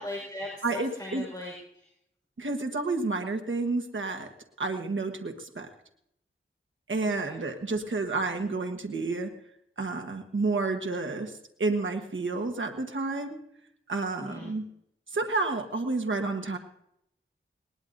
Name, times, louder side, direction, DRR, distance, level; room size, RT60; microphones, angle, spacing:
voice 1, 0.0-1.9 7.2-7.4 14.2-14.5, left 1 dB, 20° left, -3 dB, 4.8 m, -39 dB
voice 2, 0.6-1.2 2.4-4.3 4.6-5.7 6.9-9.3 9.8-11.3 11.6-13.4 13.9-14.6 15.1-16.6, right 3 dB, 70° right, 4 dB, 1.4 m, -30 dB
20.5 x 19.0 x 2.7 m, 0.77 s
wide cardioid pair, 75°, 21 cm